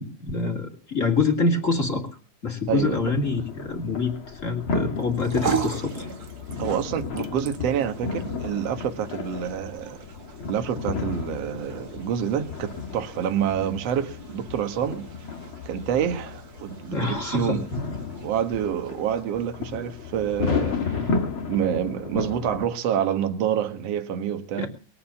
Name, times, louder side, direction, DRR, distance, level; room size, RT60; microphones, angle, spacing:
voice 1, 0.0-2.1 2.4-6.1 16.9-17.6 24.6-24.7, left 3 dB, 25° left, 2.4 m, -26 dB
sound 1, 2.7-22.6, left 5 dB, 40° left, 2.6 m, -33 dB
voice 2, 2.7-3.0 6.6-10.0 10.5-15.1 15.7-17.7 18.2-21.1 21.5-24.7, right 9 dB, 55° right, 2.0 m, -27 dB
sound 2, 5.0-21.5, right 7 dB, 75° right, 0.8 m, -39 dB
22.0 x 8.6 x 7.1 m
omnidirectional pair, 4.2 m